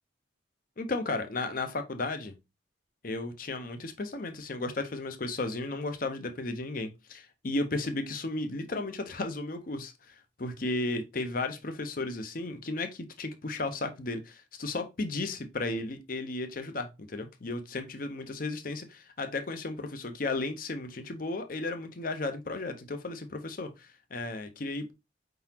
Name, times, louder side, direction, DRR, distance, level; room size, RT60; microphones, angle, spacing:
voice 1, 0.8-2.3 3.0-24.9, left 2 dB, 45° left, 0.7 m, -34 dB
4.8 x 3.9 x 2.8 m
head